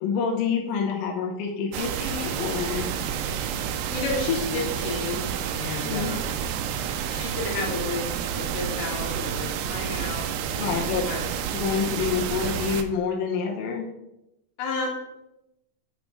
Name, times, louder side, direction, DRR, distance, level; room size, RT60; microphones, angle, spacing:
voice 1, 0.0-2.9 5.8-6.2 10.6-11.0 11.5-13.9, left 6 dB, 90° left, 0 dB, 2.8 m, -27 dB
sound 1, 1.7-12.8, right 8 dB, 80° right, 2.0 m, -30 dB
voice 2, 3.6-6.3 7.1-11.3 14.6-14.9, left 3 dB, 75° left, 0 dB, 3.0 m, -32 dB
8.5 x 4.3 x 4.5 m, 0.89 s
omnidirectional pair, 4.1 m